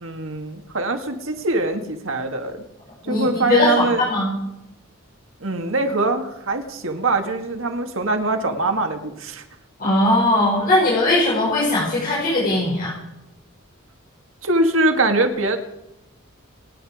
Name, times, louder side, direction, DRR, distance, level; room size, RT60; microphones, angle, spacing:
voice 1, 0.0-2.6 3.1-4.0 5.4-9.4 14.4-15.6, right 2 dB, 65° right, 5 dB, 2.0 m, -22 dB
voice 2, 3.0-4.3 9.8-12.9, left 2 dB, 45° left, -6 dB, 5.5 m, -19 dB
27.5 x 10.0 x 5.0 m, 0.90 s
head